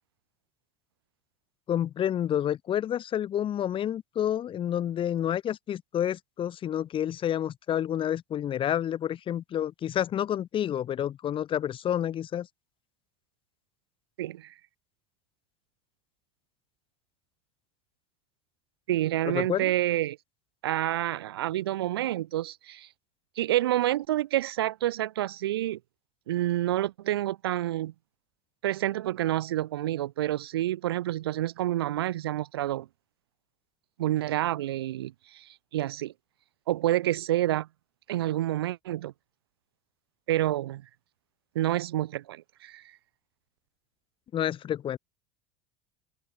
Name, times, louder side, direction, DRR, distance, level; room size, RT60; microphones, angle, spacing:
voice 1, 1.7-12.5 19.3-19.6 44.3-45.0, left 10 dB, 45° left, 4.5 m, -29 dB
voice 2, 14.2-14.5 18.9-20.2 20.6-22.9 23.4-25.8 26.3-27.9 28.6-32.9 34.0-36.1 36.7-37.7 38.1-39.1 40.3-40.8 41.6-42.8, right 14 dB, 85° right, 3.8 m, -28 dB
hypercardioid pair, 85°, 12 cm